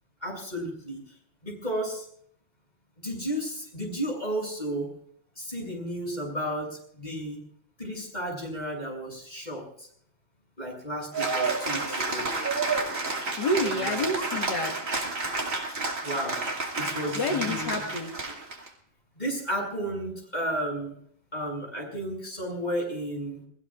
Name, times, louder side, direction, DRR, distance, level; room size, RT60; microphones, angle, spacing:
voice 1, 0.2-1.0 1.4-2.1 3.0-4.9 5.4-7.4 7.8-9.9 10.6-12.3 13.6-14.0 16.0-16.4 16.8-17.8 18.3-18.4 19.2-20.9 21.3-23.4, right 1 dB, 20° left, 0 dB, 7.5 m, -33 dB
Cheering / Applause, 11.1-18.7, right 3 dB, 40° right, 2.8 m, -30 dB
voice 2, 13.4-14.7 17.1-18.1, left 1 dB, 60° left, 0 dB, 2.4 m, -28 dB
29.5 x 19.5 x 2.5 m, 0.63 s
omnidirectional pair, 2.1 m